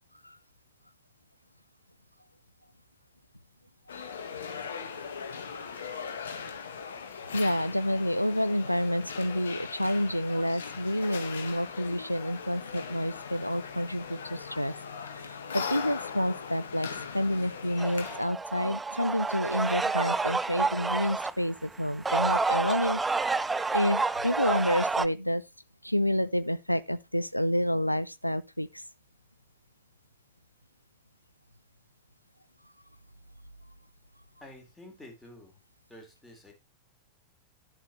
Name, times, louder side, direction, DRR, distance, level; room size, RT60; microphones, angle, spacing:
sound 1, 3.9-18.2, left 6 dB, 65° left, 1.7 m, -39 dB
voice 1, 7.3-14.7 15.0-23.0 23.7-25.4 25.8-28.8, equal, 90° left, 0.5 m, -29 dB
sound 2, 17.8-21.3 21.9-25.1, right 3 dB, 10° right, 0.5 m, -29 dB
voice 2, 34.4-35.6 35.9-36.5, left 1 dB, 10° left, 4.1 m, -49 dB
11.0 x 7.6 x 3.2 m
figure-of-eight pair, 90°, 0 cm